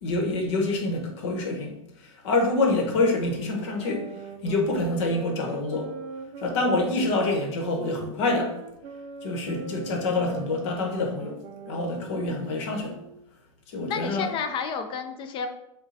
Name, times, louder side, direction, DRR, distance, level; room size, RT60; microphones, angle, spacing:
voice 1, 0.0-1.7 2.0-4.1 4.4-5.9 6.4-8.5 9.2-11.4 11.7-13.0 13.7-14.3, left 2 dB, 60° left, 2 dB, 1.0 m, -26 dB
sound 1, 3.2-13.3, right 5 dB, 35° right, 0.4 m, -41 dB
voice 2, 13.9-15.5, left 6 dB, 30° left, 7 dB, 0.5 m, -31 dB
3.9 x 2.2 x 4.0 m, 0.82 s
hypercardioid pair, 115°, 17 cm